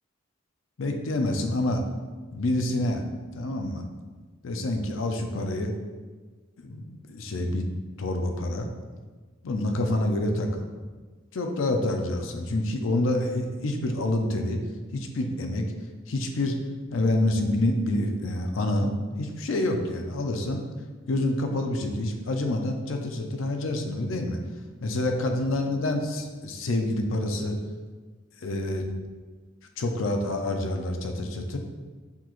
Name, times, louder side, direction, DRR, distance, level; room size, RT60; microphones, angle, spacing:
voice 1, 0.8-1.8 2.3-3.0 3.3-3.8 4.4-5.7 6.6-7.7 8.0-8.7 9.4-10.6 11.3-14.6 14.9-15.6 16.1-16.5 16.9-18.9 19.2-20.7 21.1-24.4 24.8-27.6 28.4-28.8 29.8-31.6, left 1 dB, 80° left, 4 dB, 0.5 m, -27 dB
5.8 x 2.4 x 3.0 m, 1.4 s
head